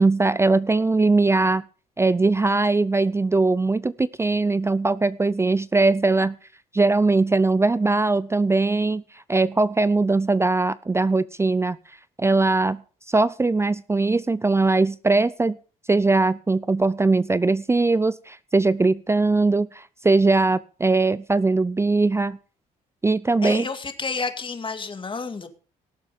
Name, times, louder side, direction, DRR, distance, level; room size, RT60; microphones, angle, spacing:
voice 1, 0.0-1.6 2.0-6.4 6.7-9.0 9.3-11.8 12.2-12.8 13.1-15.6 15.9-22.4 23.0-23.7, right 3 dB, 15° right, 0.5 m, -20 dB
voice 2, 23.4-25.5, left 4 dB, 30° left, 2.2 m, -30 dB
18.0 x 7.5 x 5.3 m
cardioid pair, 75°, 16 cm